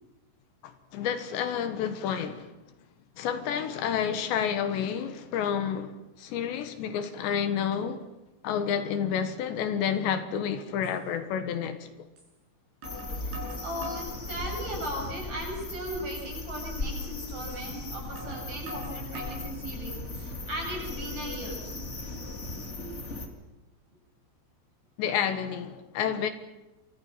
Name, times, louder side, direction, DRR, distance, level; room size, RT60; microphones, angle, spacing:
voice 1, 0.6-2.5 3.2-8.1 8.4-11.9 25.0-26.3, left 8 dB, 80° left, 3.6 m, -30 dB
sound 1, 10.8-11.0 12.2-12.3 12.8-14.1 14.7-15.2 15.6-15.7 16.2-16.3 17.5-17.6 18.2-19.5 20.0-20.5, equal, 70° right, 8.9 m, -43 dB
sound 2, 12.8-23.3, left 2 dB, 25° left, 1.4 m, -37 dB
voice 2, 13.6-21.8, equal, 40° right, 9.2 m, -37 dB
28.5 x 25.0 x 5.8 m
omnidirectional pair, 5.1 m